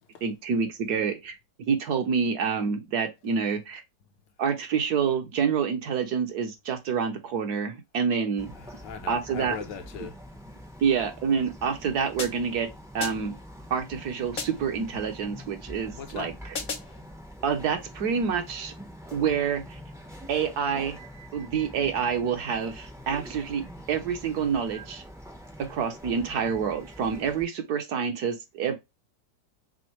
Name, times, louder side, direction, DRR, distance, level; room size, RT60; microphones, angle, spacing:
voice 1, 0.2-3.8 4.4-8.5 9.1-9.6 10.8-12.7 12.9-13.4 13.7-16.3 17.4-18.7 19.1-19.8 20.3-21.0 21.3-23.6 23.9-25.0 25.7-28.7, right 6 dB, 65° right, 1.2 m, -27 dB
Bird vocalization bird call bird song, 8.4-27.4, equal, 5° right, 0.3 m, -45 dB
voice 2, 8.5-10.2 16.0-16.3, left 7 dB, 75° left, 1.4 m, -39 dB
sound 1, 12.2-12.6 13.0-13.4 14.4-14.8 16.5-17.0, left 4 dB, 50° left, 0.7 m, -36 dB
6.2 x 2.1 x 3.0 m
omnidirectional pair, 2.0 m